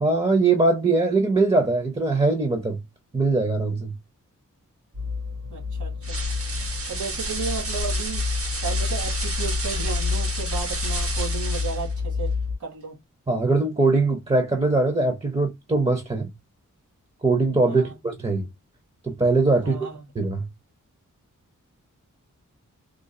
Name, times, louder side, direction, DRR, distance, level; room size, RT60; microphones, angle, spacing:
voice 1, 0.0-2.8 3.1-3.9 13.3-16.3 17.2-18.5 19.0-19.9 20.1-20.5, right 3 dB, 20° right, 0.8 m, -21 dB
sound 1, 4.9-12.6, left 5 dB, 85° right, 2.5 m, -29 dB
voice 2, 5.5-6.2 6.9-8.2 8.6-12.3 12.6-13.0 17.7-18.0 19.6-20.1, right 5 dB, 65° right, 1.9 m, -34 dB
sound 2, 6.0-11.9, right 2 dB, 45° right, 1.0 m, -31 dB
3.8 x 2.5 x 2.5 m
wide cardioid pair, 90°, 32 cm